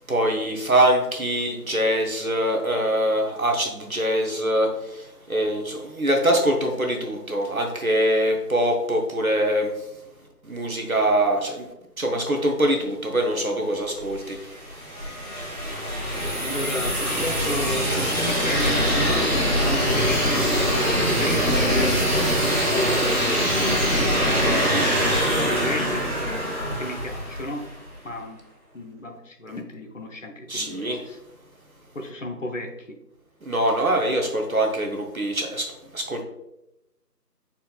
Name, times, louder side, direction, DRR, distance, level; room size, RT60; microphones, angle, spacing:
voice 1, 0.1-9.9 10.4-11.7 12.0-14.5 30.5-31.0 33.4-36.2, right 1 dB, 60° right, 3 dB, 0.7 m, -23 dB
sound 1, 14.1-27.8, equal, 40° right, 1.6 m, -23 dB
voice 2, 16.2-23.9 24.2-26.3 26.8-27.7 28.0-28.4 28.7-31.2 31.9-33.0 33.8-34.1, left 1 dB, 50° left, 3 dB, 0.6 m, -33 dB
5.5 x 4.2 x 2.2 m, 0.89 s
figure-of-eight pair, 175°, 49 cm